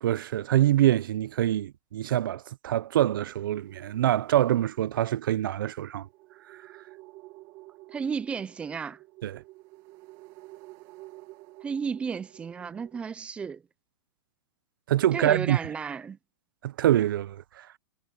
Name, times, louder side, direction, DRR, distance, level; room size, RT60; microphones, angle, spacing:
voice 1, 0.0-6.1 9.2-9.4 14.9-15.6 16.6-17.7, right 12 dB, 70° right, 0.6 m, -25 dB
sound 1, 3.1-13.0, right 20 dB, 35° right, 2.3 m, -51 dB
voice 2, 7.9-9.0 11.6-13.6 15.1-16.2, right 6 dB, 10° right, 0.5 m, -33 dB
hypercardioid pair, 160°, 12 cm